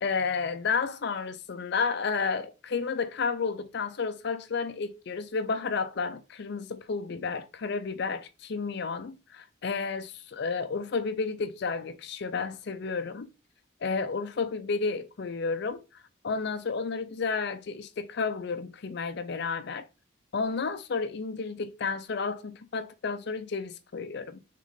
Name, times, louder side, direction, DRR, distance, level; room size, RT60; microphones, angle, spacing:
voice 1, 0.0-13.3 13.8-15.8 16.2-19.8 20.3-24.4, left 5 dB, 55° left, 0.5 m, -31 dB
3.7 x 3.6 x 3.5 m
head